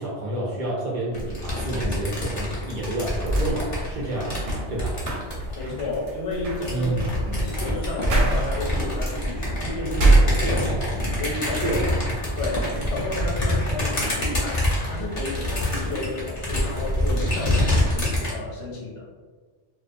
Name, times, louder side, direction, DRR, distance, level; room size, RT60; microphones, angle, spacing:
voice 1, 0.0-4.4 4.7-5.0 6.7-7.4 11.5-12.1 12.5-12.7, right 2 dB, 60° right, -5 dB, 0.6 m, -29 dB
sound 1, 1.1-5.9 6.5-18.3, left 1 dB, 40° left, 0.7 m, -26 dB
sound 2, 3.3-10.9 11.3-12.1, right 2 dB, 90° right, 0.9 m, -26 dB
voice 2, 5.5-6.9 7.3-10.8 11.1-11.8 12.4-19.0, left 2 dB, 90° left, -3 dB, 1.0 m, -32 dB
Wood, 12.4-13.9, left 1 dB, 65° left, 0.3 m, -43 dB
2.3 x 2.1 x 2.5 m, 1.4 s
omnidirectional pair, 1.2 m